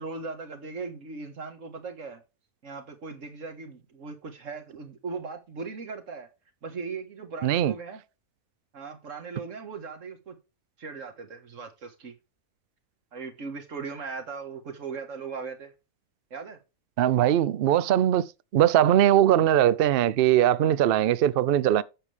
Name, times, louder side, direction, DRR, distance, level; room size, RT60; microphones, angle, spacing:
voice 1, 0.0-2.2 2.6-6.3 6.6-8.0 8.7-10.4 10.8-12.1 13.1-15.7 16.3-16.6 20.6-20.8, right 4 dB, 55° right, 1.8 m, -38 dB
voice 2, 7.4-7.7 17.0-18.2 18.5-21.8, right 11 dB, 85° right, 0.5 m, -21 dB
9.8 x 6.9 x 3.3 m
omnidirectional pair, 1.6 m